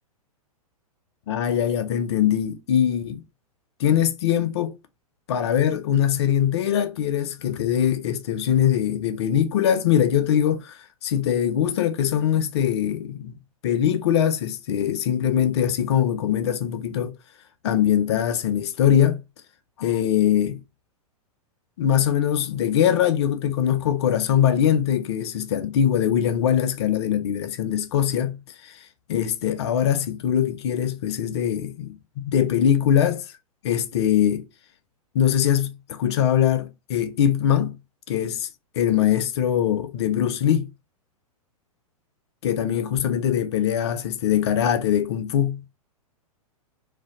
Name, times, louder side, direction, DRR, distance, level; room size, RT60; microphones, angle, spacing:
voice 1, 1.3-3.2 3.8-4.8 5.3-13.3 13.6-17.1 17.6-19.2 19.8-20.6 21.8-28.8 29.1-33.3 33.6-34.4 35.1-37.8 38.1-38.5 38.8-40.7 42.4-45.6, left 9 dB, 45° left, 0.4 m, -22 dB
2.6 x 2.2 x 3.4 m
figure-of-eight pair, 105°, 19 cm